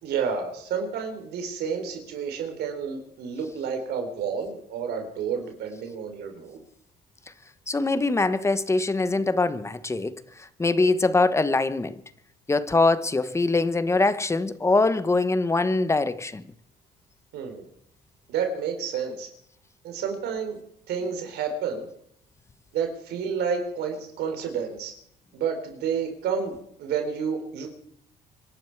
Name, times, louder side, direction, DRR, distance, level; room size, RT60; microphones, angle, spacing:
voice 1, 0.0-6.6 17.3-17.6 18.3-19.3 19.8-20.6 20.9-21.9 22.7-24.9 25.3-27.7, right 6 dB, 75° right, 3.9 m, -30 dB
voice 2, 7.7-10.1 10.6-11.9 12.5-16.4, left 3 dB, 15° left, 1.0 m, -23 dB
26.0 x 11.5 x 4.7 m
cardioid pair, 110°, 17 cm